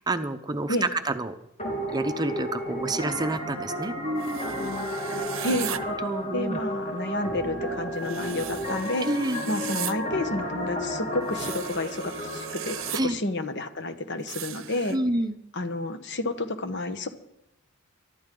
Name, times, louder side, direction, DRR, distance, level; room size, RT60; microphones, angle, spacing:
voice 1, 0.0-1.3 1.9-4.7 6.0-6.6 9.0-9.4 12.9-13.2 14.9-15.4, right 2 dB, 20° right, 8 dB, 0.7 m, -29 dB
sound 1, 1.6-12.9, equal, 30° left, 3.3 m, -32 dB
sound 2, 4.2-5.8 8.0-9.9 11.3-13.0 14.3-15.0, right 12 dB, 65° right, 0.8 m, -37 dB
voice 2, 5.4-5.8 6.3-9.1 9.5-15.0 15.5-17.1, left 1 dB, 55° left, 10 dB, 1.2 m, -30 dB
23.0 x 12.5 x 3.8 m, 0.83 s
head